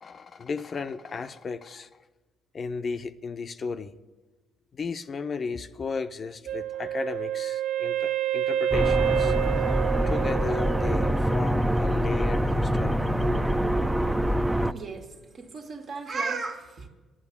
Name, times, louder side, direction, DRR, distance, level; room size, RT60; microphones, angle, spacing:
voice 1, 0.0-2.0 2.5-3.9 4.7-9.3 10.1-13.6, left 5 dB, 45° left, 0.7 m, -34 dB
Wind instrument woodwind instrument, 6.5-11.3, right 10 dB, 75° right, 0.4 m, -28 dB
sound 1, 8.7-14.7, equal, 10° right, 0.6 m, -25 dB
voice 2, 14.6-16.9, right 4 dB, 55° right, 1.7 m, -35 dB
11.0 x 8.8 x 8.4 m
supercardioid pair, 65°, 0 cm